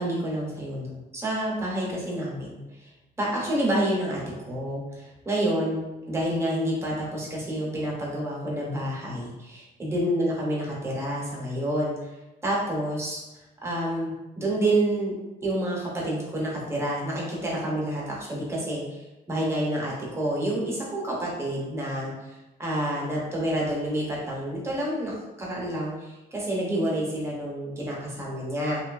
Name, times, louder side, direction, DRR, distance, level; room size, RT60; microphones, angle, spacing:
voice 1, 0.0-2.9 3.2-4.2 4.5-5.8 6.1-12.1 12.4-13.2 13.6-15.1 15.4-28.8, right 1 dB, 15° right, -4 dB, 0.6 m, -28 dB
2.9 x 2.2 x 2.4 m, 1.0 s
cardioid pair, 160°, 18 cm